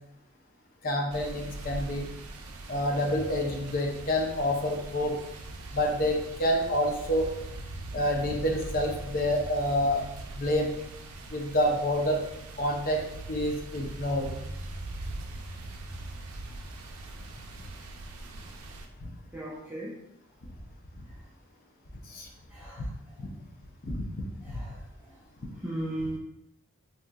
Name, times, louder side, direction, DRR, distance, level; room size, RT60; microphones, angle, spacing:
voice 1, 0.8-2.1 2.7-5.2 5.7-7.3 7.9-10.0 10.3-10.7 11.3-12.2 12.6-13.0 13.3-14.3 19.0-19.1 22.1-22.3 22.8-22.9 23.2-23.3 23.8-24.0 24.4-24.5 25.4-25.5, left 1 dB, 45° left, 1 dB, 0.6 m, -28 dB
sound 1, 1.1-18.9, right 2 dB, 90° right, 0.4 m, -41 dB
voice 2, 19.3-19.9 22.5-22.9 24.5-24.8 25.6-26.2, right 1 dB, 10° right, -6 dB, 0.4 m, -36 dB
3.7 x 2.8 x 2.2 m, 0.84 s
head